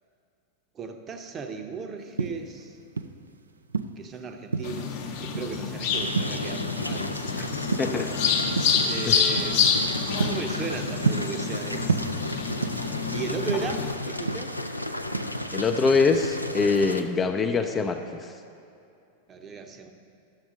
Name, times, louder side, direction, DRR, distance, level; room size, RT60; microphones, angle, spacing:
voice 1, 0.7-2.8 4.0-7.1 7.9-8.4 8.8-11.9 13.1-14.5 19.3-19.9, right 5 dB, 25° right, 5 dB, 0.7 m, -36 dB
sound 1, 2.0-3.3 3.7-4.9 5.3-5.7 6.2-7.3 7.5-8.1 8.6-8.9 9.4-9.6 10.0-11.6 11.9-13.0 13.3-14.8 15.1-15.5, right 4 dB, 75° right, 0.3 m, -29 dB
sound 2, 4.6-13.9, left 6 dB, 50° left, 0.8 m, -28 dB
sound 3, 5.9-17.0, left 1 dB, 90° left, 0.4 m, -33 dB
voice 2, 15.5-18.3, left 4 dB, 20° left, 6 dB, 0.4 m, -24 dB
11.5 x 6.9 x 3.7 m, 2.6 s
figure-of-eight pair, 90°, 0 cm